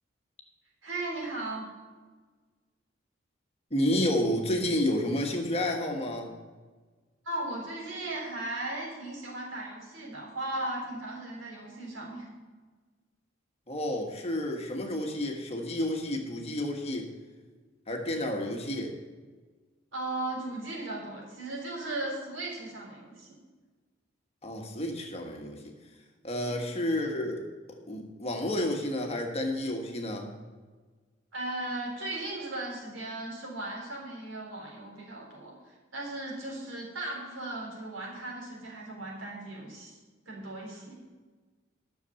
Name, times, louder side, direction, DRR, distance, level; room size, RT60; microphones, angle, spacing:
voice 1, 0.8-1.7 7.2-12.3 19.9-23.4 31.3-40.0 40.3-40.9, right 2 dB, 85° right, -2 dB, 3.7 m, -37 dB
voice 2, 3.7-6.3 13.7-17.1 17.9-18.9 24.4-25.6 26.2-27.4 27.9-30.3, left 1 dB, 30° left, 2 dB, 1.5 m, -30 dB
11.0 x 6.7 x 7.0 m, 1.4 s
head